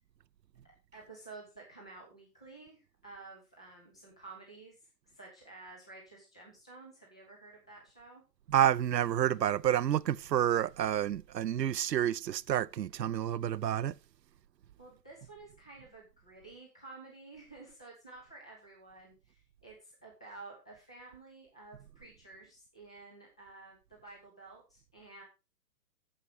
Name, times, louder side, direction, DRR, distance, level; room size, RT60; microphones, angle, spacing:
voice 1, 0.9-8.2 14.8-25.2, right 3 dB, 5° left, 0.4 m, -52 dB
voice 2, 8.5-13.9, right 11 dB, 85° right, 0.7 m, -29 dB
8.7 x 7.4 x 4.9 m
hypercardioid pair, 135°, 49 cm